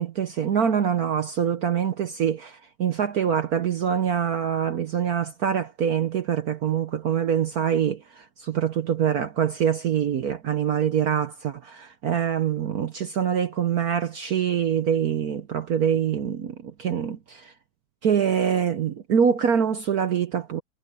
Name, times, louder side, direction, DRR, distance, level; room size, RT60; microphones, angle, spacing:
voice 1, 0.0-17.5 18.0-20.6, right 8 dB, 60° right, 1.0 m, -24 dB
omnidirectional pair, 2.4 m